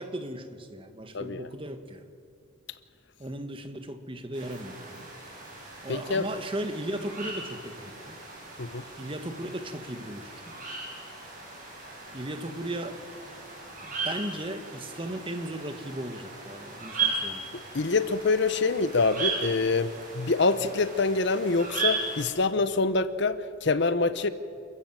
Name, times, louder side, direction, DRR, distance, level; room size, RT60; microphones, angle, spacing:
voice 1, 0.0-2.0 3.2-5.1 5.8-8.2 9.0-10.5 12.1-13.0 13.8-17.5, right 1 dB, 25° right, 7 dB, 1.4 m, -36 dB
voice 2, 1.1-1.5 5.9-6.3 8.6-8.9 17.5-24.3, left 3 dB, 60° left, 13 dB, 0.8 m, -26 dB
sound 1, 4.3-22.3, right 4 dB, 40° right, 7.0 m, -37 dB
28.5 x 15.0 x 7.5 m, 2.3 s
head